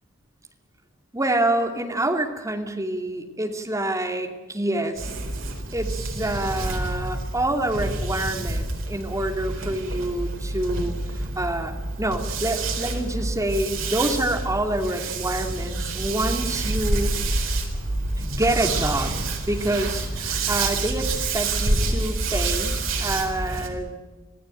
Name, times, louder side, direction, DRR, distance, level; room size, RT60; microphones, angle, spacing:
voice 1, 1.1-5.1 5.7-17.2 18.2-19.2 19.4-24.2, right 1 dB, 15° right, 3 dB, 2.7 m, -27 dB
sound 1, 4.9-23.7, right 2 dB, 80° right, 4.4 m, -28 dB
26.5 x 16.0 x 9.2 m, 1.3 s
head